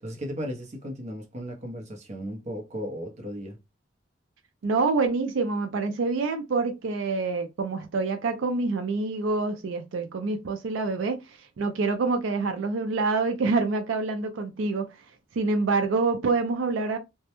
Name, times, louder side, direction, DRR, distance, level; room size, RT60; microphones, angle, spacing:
voice 1, 0.0-3.6, equal, 35° right, 0.6 m, -35 dB
voice 2, 4.6-14.9 15.4-17.0, right 3 dB, 80° right, 0.4 m, -26 dB
2.2 x 2.0 x 2.8 m
head